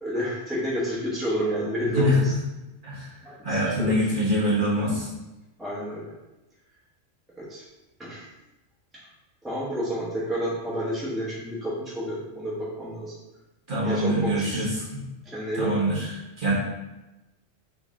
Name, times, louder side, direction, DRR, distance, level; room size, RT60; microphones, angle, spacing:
voice 1, 0.0-2.3 3.2-3.9 5.6-6.1 7.4-7.6 8.0-8.3 9.4-13.1 13.8-14.6 15.3-15.8, equal, ahead, -7 dB, 1.0 m, -30 dB
voice 2, 1.9-2.3 2.8-3.1 3.4-5.1 13.7-14.8 15.5-16.5, equal, 45° right, -7 dB, 1.4 m, -24 dB
4.0 x 3.5 x 3.7 m, 1.0 s
omnidirectional pair, 1.2 m